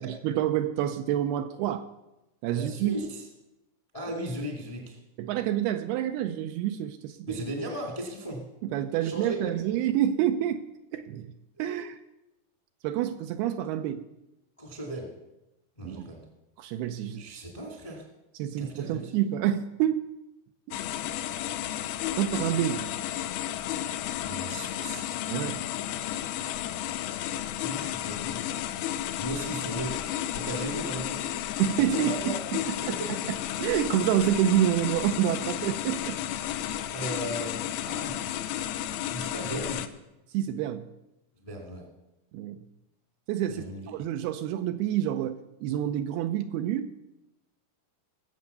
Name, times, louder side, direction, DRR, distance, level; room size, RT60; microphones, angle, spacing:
voice 1, 0.0-1.9 2.4-3.0 5.2-7.4 8.6-10.6 10.9-11.3 11.6-12.0 12.8-14.0 15.8-16.1 16.6-17.2 18.4-20.0 20.7-20.8 22.2-22.9 25.3-25.6 31.6-33.0 33.3-36.2 36.7-36.8 40.3-40.9 42.3-42.6 43.3-46.9, right 11 dB, 80° right, 9 dB, 2.4 m, -28 dB
voice 2, 2.5-3.2 3.9-5.0 7.2-8.4 8.9-9.5 11.6-11.8 14.6-15.1 15.8-16.2 17.1-18.0 18.6-19.1 24.2-25.1 27.6-28.4 29.2-30.0 30.3-31.4 31.8-32.4 32.9-33.1 36.9-37.6 37.8-38.1 39.1-39.8 41.4-41.9 43.5-43.9, right 1 dB, 20° left, 2 dB, 0.9 m, -36 dB
sound 1, 20.7-39.9, left 12 dB, 80° left, 2.5 m, -33 dB
19.0 x 7.7 x 6.7 m, 0.96 s
omnidirectional pair, 4.8 m